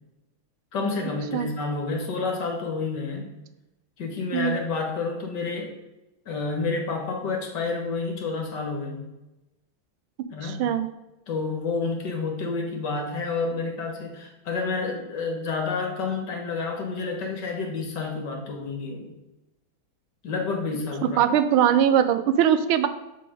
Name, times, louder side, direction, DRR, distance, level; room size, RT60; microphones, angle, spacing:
voice 1, 0.7-3.3 4.0-5.7 6.3-9.1 10.3-10.7 11.3-19.1 20.2-21.2, left 4 dB, 60° left, 2 dB, 2.0 m, -29 dB
voice 2, 10.4-10.9 21.0-22.9, right 9 dB, 90° right, 11 dB, 1.5 m, -21 dB
7.1 x 6.9 x 5.0 m, 0.98 s
omnidirectional pair, 2.2 m